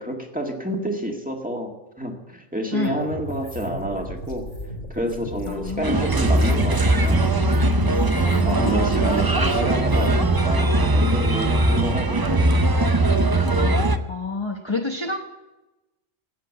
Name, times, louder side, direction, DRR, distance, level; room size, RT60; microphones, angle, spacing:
voice 1, 0.0-1.7 2.0-4.5 4.9-7.2 8.1-12.9, equal, 5° right, 1 dB, 1.9 m, -29 dB
voice 2, 2.7-3.1 5.5-6.0 8.2-9.2 11.6-11.8 14.1-15.2, left 3 dB, 25° left, 2 dB, 1.0 m, -29 dB
sound 1, 2.8-10.2, left 1 dB, 50° left, 2.9 m, -35 dB
Bird, 5.8-14.0, right 2 dB, 25° right, 0.5 m, -20 dB
15.0 x 8.4 x 8.2 m, 1.0 s
omnidirectional pair, 1.3 m